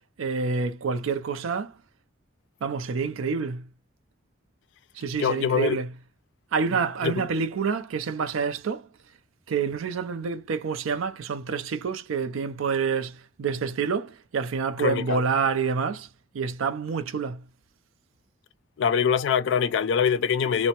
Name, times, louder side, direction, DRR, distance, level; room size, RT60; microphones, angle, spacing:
voice 1, 0.2-1.7 2.6-3.7 5.0-5.9 6.5-8.9 9.5-16.1 16.3-17.4, right 5 dB, 90° right, 0.4 m, -28 dB
voice 2, 5.2-5.8 6.7-7.2 14.8-15.2 18.8-20.7, left 7 dB, 65° left, 0.3 m, -24 dB
3.2 x 2.1 x 2.8 m
head